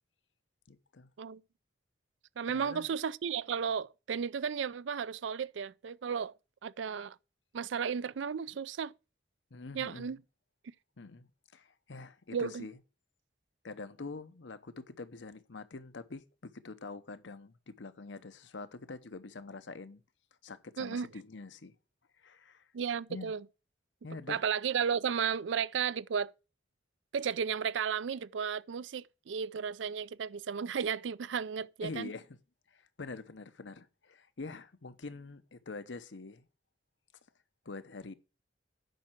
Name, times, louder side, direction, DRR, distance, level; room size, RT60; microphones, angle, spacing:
voice 1, 0.7-1.1 2.5-2.9 9.5-10.1 11.0-11.3 11.5-12.8 13.6-20.0 20.4-21.7 22.2-22.6 23.1-23.3 24.0-24.4 31.8-32.4 32.7-36.5 37.7-38.1, left 3 dB, 80° left, 0.9 m, -45 dB
voice 2, 2.4-6.3 6.6-7.2 7.5-8.9 9.7-10.2 12.3-12.7 20.8-21.1 22.7-23.4 24.3-26.3 27.1-32.1, right 7 dB, 85° right, 0.4 m, -34 dB
9.2 x 5.7 x 5.8 m
head